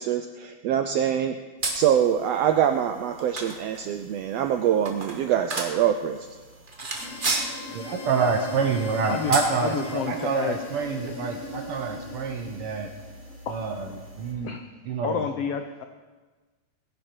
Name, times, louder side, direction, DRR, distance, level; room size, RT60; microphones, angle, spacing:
voice 1, 0.0-1.4 1.7-6.2, right 9 dB, 85° right, 7 dB, 1.4 m, -24 dB
sound 1, 1.6-14.3, right 2 dB, 40° right, 0.7 m, -36 dB
sound 2, 6.9-10.0, left 3 dB, 60° left, 5.6 m, -44 dB
sound 3, 7.0-14.5, equal, 5° right, 4.3 m, -40 dB
voice 2, 7.7-12.9 13.5-14.6 14.9-15.3, right 5 dB, 70° right, 4 dB, 1.4 m, -27 dB
voice 3, 9.6-10.6 13.5-13.6 14.4-14.6 15.0-15.8, left 7 dB, 85° left, 7 dB, 1.3 m, -29 dB
20.0 x 10.5 x 4.5 m, 1.3 s
omnidirectional pair, 3.5 m